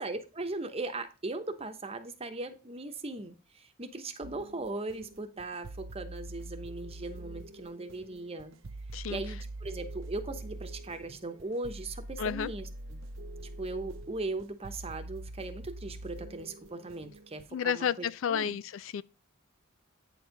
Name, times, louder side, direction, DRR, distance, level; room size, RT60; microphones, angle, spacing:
voice 1, 0.0-8.6 9.1-13.0 13.6-18.6, right 2 dB, 30° right, 1.0 m, -39 dB
sound 1, 4.2-17.5, right 2 dB, 65° right, 0.7 m, -44 dB
voice 2, 12.2-12.5 17.5-19.0, left 8 dB, 70° left, 0.4 m, -31 dB
9.0 x 4.5 x 5.2 m
head